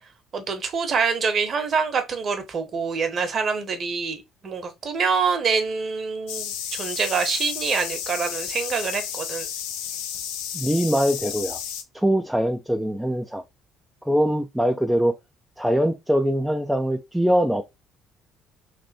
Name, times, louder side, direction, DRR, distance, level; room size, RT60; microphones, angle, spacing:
voice 1, 0.3-9.5, right 5 dB, 45° right, 1.0 m, -25 dB
sound 1, 6.3-11.8, left 9 dB, 70° left, 0.5 m, -32 dB
voice 2, 10.5-11.6 11.9-13.4 14.0-15.1 15.6-17.6, equal, 5° right, 0.5 m, -22 dB
3.3 x 2.5 x 4.1 m
hypercardioid pair, 55°, 0 cm